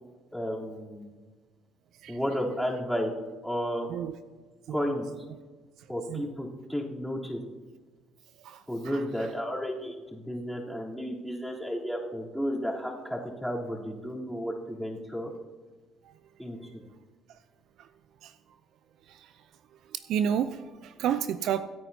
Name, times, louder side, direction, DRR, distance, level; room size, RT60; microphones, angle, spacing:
voice 1, 0.3-1.1 2.1-3.1 3.4-3.9 4.7-5.1 5.9-7.4 8.7-15.3 16.4-16.6, equal, ahead, -3 dB, 3.4 m, -32 dB
voice 2, 8.4-9.0 16.0-16.2 17.3-17.4 17.8-17.9 18.2-18.3 19.1-19.3 19.9-21.6, right 9 dB, 65° right, 12 dB, 0.5 m, -31 dB
25.5 x 9.2 x 2.8 m, 1.3 s
hypercardioid pair, 60°, 0 cm